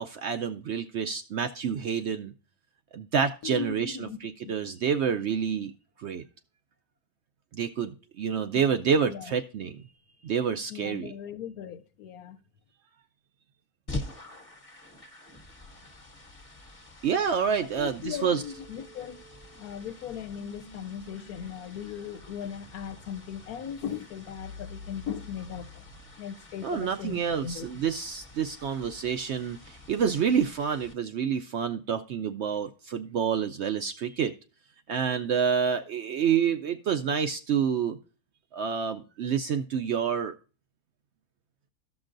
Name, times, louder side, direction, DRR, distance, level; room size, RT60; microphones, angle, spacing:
voice 1, 0.0-2.3 2.9-5.7 6.0-6.2 7.5-9.8 10.2-11.1 17.0-18.4 26.6-34.3 34.9-38.0 38.5-40.3, right 7 dB, 65° right, 0.7 m, -28 dB
voice 2, 3.4-4.6 8.5-8.6 9.0-9.3 10.7-12.4 17.7-19.2 19.5-25.8 26.2-27.7, left 8 dB, 80° left, 1.2 m, -38 dB
sound 1, 13.9-30.9, left 2 dB, 25° left, 1.1 m, -46 dB
sound 2, 18.3-26.2, left 2 dB, 90° right, 1.7 m, -50 dB
14.0 x 5.9 x 2.5 m
omnidirectional pair, 1.5 m